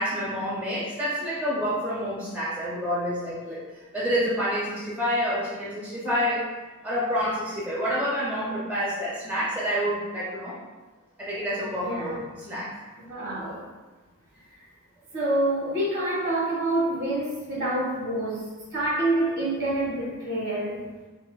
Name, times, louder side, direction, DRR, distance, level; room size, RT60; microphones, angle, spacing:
voice 1, 0.0-3.6 3.9-6.4 6.8-10.6 11.2-12.7, equal, 5° right, -9 dB, 0.6 m, -28 dB
voice 2, 11.8-12.2 13.1-13.7 15.1-18.4 18.7-20.8, right 1 dB, 50° right, -6 dB, 1.4 m, -27 dB
4.2 x 2.5 x 2.3 m, 1.2 s
head